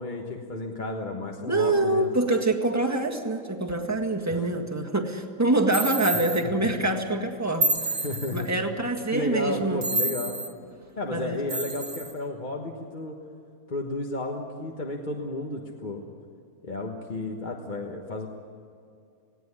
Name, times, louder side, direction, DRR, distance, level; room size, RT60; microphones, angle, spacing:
voice 1, 0.0-2.2 4.3-4.5 6.1-6.9 8.0-8.5 9.1-10.4 11.0-13.2 13.7-16.0 16.6-18.3, left 2 dB, 35° left, 1 dB, 1.4 m, -33 dB
voice 2, 1.4-8.0 8.3-9.8 11.1-11.4, right 2 dB, 10° right, 2 dB, 1.7 m, -25 dB
sound 1, 5.7-6.4 7.6-8.5 9.8-10.5 11.5-12.1, right 2 dB, 45° right, 1.9 m, -28 dB
19.5 x 17.0 x 9.8 m, 2.4 s
omnidirectional pair, 1.5 m